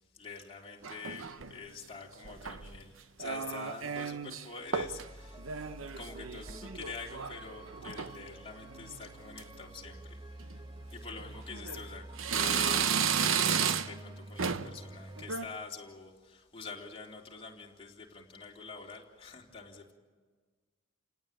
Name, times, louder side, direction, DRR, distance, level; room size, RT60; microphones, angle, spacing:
voice 1, 0.1-10.6 10.9-19.9, left 4 dB, 25° left, -2 dB, 3.6 m, -46 dB
sound 1, 0.8-1.6 2.2-2.8 3.2-4.4 4.7-5.1 5.4-7.4 7.7-8.2 8.7-9.0 9.4-9.5 10.4-10.6 11.2-11.8 12.2-14.1 14.4-14.8 15.2-15.5, right 7 dB, 75° right, 0.9 m, -33 dB
sound 2, 4.8-15.3, right 1 dB, 25° right, 1.2 m, -49 dB
29.5 x 18.0 x 9.0 m, 1.5 s
head